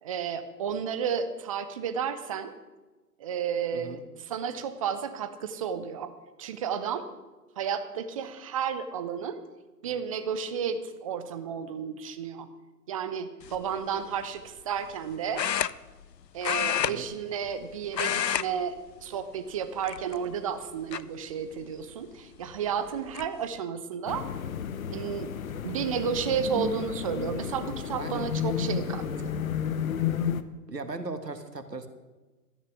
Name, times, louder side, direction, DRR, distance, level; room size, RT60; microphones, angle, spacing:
voice 1, 0.0-2.5 3.2-6.1 6.4-7.1 7.6-9.4 9.8-12.5 12.9-15.4 16.3-24.3 24.9-29.3, right 7 dB, 20° right, 10 dB, 0.6 m, -32 dB
voice 2, 3.7-4.0 16.8-17.1 27.9-28.3 30.7-31.9, right 3 dB, 85° right, 8 dB, 1.6 m, -37 dB
sound 1, 13.4-13.7 15.3-16.1 16.4-17.6 17.9-18.5 18.8-19.0 19.8-20.3 20.9-21.0 22.5-22.6 22.9-23.3, left 9 dB, 90° left, 0.6 m, -29 dB
sound 2, 24.1-30.4, left 8 dB, 55° left, 0.9 m, -32 dB
13.0 x 9.8 x 6.1 m, 1.2 s
figure-of-eight pair, 125°, 48 cm